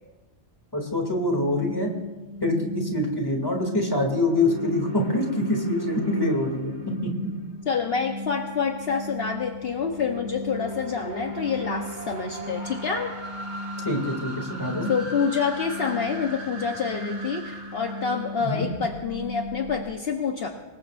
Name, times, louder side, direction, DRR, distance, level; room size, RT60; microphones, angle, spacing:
voice 1, 0.7-1.9 2.4-6.7 7.0-7.3 13.8-14.9 18.4-18.7, left 1 dB, 20° left, 1 dB, 2.7 m, -25 dB
sound 1, 1.6-19.9, equal, 40° right, 1.8 m, -36 dB
voice 2, 7.7-13.1 14.9-20.5, left 6 dB, 60° left, 3 dB, 1.2 m, -27 dB
25.5 x 20.5 x 2.6 m, 1.2 s
omnidirectional pair, 1.2 m